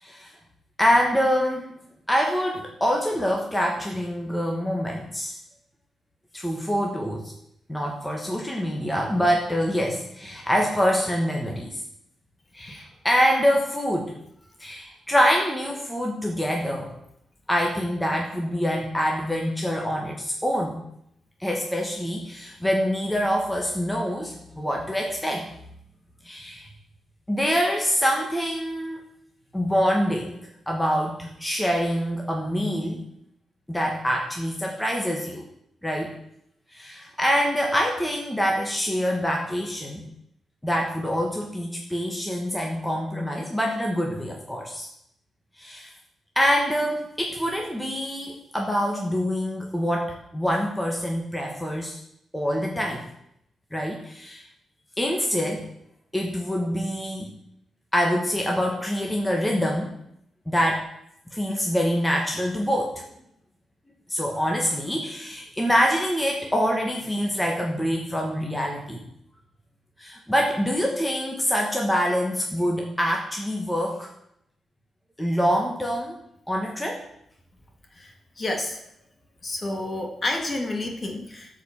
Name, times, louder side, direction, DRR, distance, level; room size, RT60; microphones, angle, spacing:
voice 1, 0.0-0.3 0.8-1.7 2.1-5.3 6.3-7.3 7.7-11.8 12.5-14.1 14.6-16.9 17.5-20.8 21.4-25.5 26.2-26.7 27.3-29.0 29.5-30.3 30.7-33.0 33.7-35.4 35.8-36.1 36.7-40.0 40.6-44.9 45.6-45.9 46.3-52.0 52.3-53.0 53.7-54.4 55.0-55.6 56.1-57.3 57.9-60.0 60.5-60.8 61.3-63.0 64.1-69.0 70.0-74.1 75.2-76.1 76.5-77.0, equal, 5° left, 0 dB, 1.4 m, -25 dB
voice 2, 77.9-78.8 79.4-81.6, left 2 dB, 30° left, 3 dB, 1.9 m, -30 dB
12.5 x 5.2 x 7.3 m, 0.77 s
cardioid pair, 120°, 0 cm